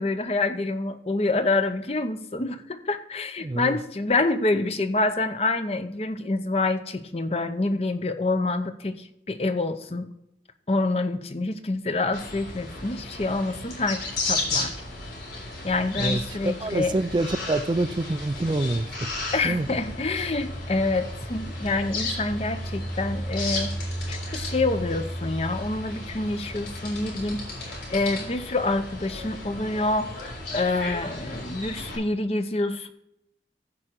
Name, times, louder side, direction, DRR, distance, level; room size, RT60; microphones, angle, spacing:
voice 1, 0.0-10.1 10.7-14.7 15.6-17.0 19.3-23.7 24.1-32.9, left 2 dB, 35° left, 9 dB, 0.7 m, -27 dB
voice 2, 3.4-3.8 16.0-19.1 19.4-19.7, right 2 dB, 25° right, 11 dB, 0.4 m, -26 dB
sound 1, 12.1-31.9, left 2 dB, 85° left, 3.6 m, -33 dB
15.0 x 5.0 x 4.4 m, 0.80 s
head